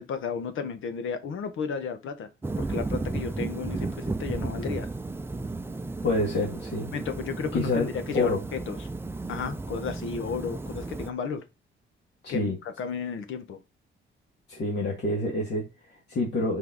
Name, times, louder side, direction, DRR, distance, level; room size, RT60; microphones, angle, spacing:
voice 1, 0.0-2.3 2.6-4.9 6.9-8.9 9.3-11.4 12.3-12.5 12.8-13.6, left 6 dB, 75° left, 1.4 m, -33 dB
sound 1, 2.4-11.1, right 2 dB, 10° right, 0.5 m, -34 dB
voice 2, 6.0-6.9 7.5-7.9 8.1-8.4 12.2-12.6 14.5-16.6, left 2 dB, 55° left, 2.2 m, -27 dB
5.7 x 5.5 x 4.1 m
cardioid pair, 155°, 21 cm